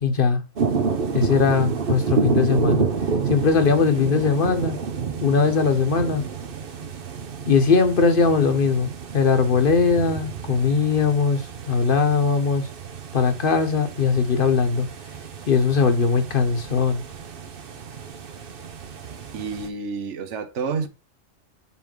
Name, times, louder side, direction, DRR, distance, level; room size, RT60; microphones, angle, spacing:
voice 1, 0.0-0.4 1.1-2.9 3.3-4.8 5.2-6.2 7.5-12.7 13.1-14.9 15.5-17.0, left 5 dB, 45° left, 1.4 m, -20 dB
sound 1, 0.6-19.7, right 5 dB, 50° right, 1.0 m, -30 dB
voice 2, 19.0-20.9, right 5 dB, 75° right, 1.2 m, -30 dB
7.3 x 3.5 x 4.5 m
omnidirectional pair, 1.2 m